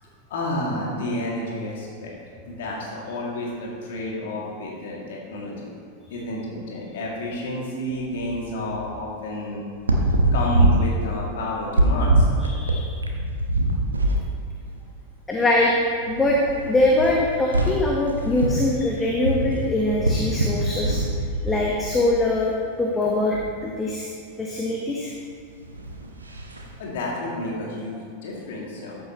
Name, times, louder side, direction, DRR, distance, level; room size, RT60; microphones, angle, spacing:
voice 1, 0.3-2.1 2.4-5.7 6.1-9.6 10.3-12.3 26.8-29.0, left 1 dB, 55° left, -3 dB, 2.3 m, -30 dB
sound 1, 7.9-8.3 8.7-8.9 9.7-14.3 14.6-14.8 15.6-15.7 16.0-22.3 23.1-23.5 25.6-26.7, right 1 dB, 75° right, 0.9 m, -24 dB
voice 2, 12.4-12.9 15.3-15.7 16.0-21.0 21.4-24.1 24.4-25.1, left 2 dB, 15° left, -2 dB, 1.0 m, -23 dB
13.5 x 7.7 x 3.0 m, 2.1 s
figure-of-eight pair, 90°, 0 cm